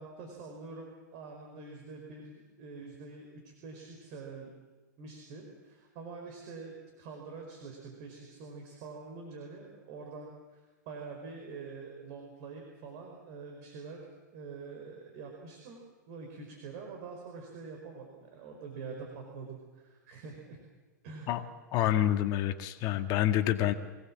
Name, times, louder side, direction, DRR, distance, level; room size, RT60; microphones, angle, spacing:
voice 1, 0.0-4.5 5.0-14.1 14.3-15.8 16.1-20.6 21.0-21.3, right 4 dB, 50° right, 2 dB, 4.7 m, -45 dB
voice 2, 21.7-23.7, left 12 dB, 40° left, 7 dB, 1.8 m, -27 dB
24.5 x 18.5 x 7.5 m, 1.3 s
hypercardioid pair, 110°, 10 cm